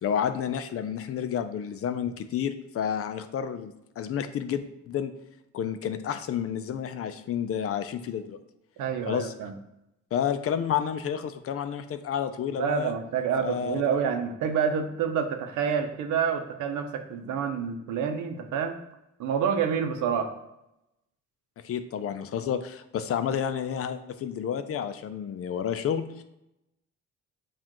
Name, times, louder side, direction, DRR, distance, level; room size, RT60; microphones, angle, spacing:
voice 1, 0.0-5.1 5.5-8.4 9.1-9.3 10.1-12.9 13.4-13.8 21.6-26.2, left 8 dB, 50° left, 10 dB, 0.4 m, -30 dB
voice 2, 8.8-9.5 12.6-18.8 19.2-20.3, right 7 dB, 80° right, 6 dB, 0.7 m, -28 dB
7.2 x 2.5 x 2.9 m, 0.88 s
cardioid pair, 90°, 30 cm